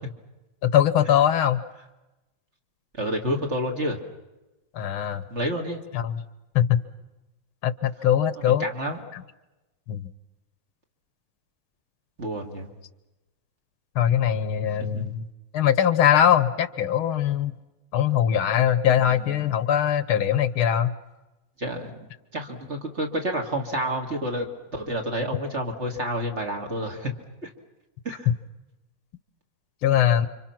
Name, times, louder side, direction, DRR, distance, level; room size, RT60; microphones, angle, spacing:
voice 1, 0.6-1.6 4.7-5.2 5.9-6.2 6.6-6.8 7.6-8.7 9.1-9.2 9.9-10.1 14.0-15.3 15.5-17.5 17.9-20.9 28.3-28.4 29.8-30.3, left 10 dB, 80° left, 14 dB, 1.8 m, -21 dB
voice 2, 2.9-4.0 5.3-5.8 8.4-9.0 12.2-12.7 14.8-15.0 19.0-19.4 21.6-22.0 22.3-27.1 27.4-27.5 28.0-28.3, equal, 30° right, 2 dB, 2.8 m, -29 dB
29.5 x 25.5 x 6.0 m, 1.0 s
omnidirectional pair, 2.3 m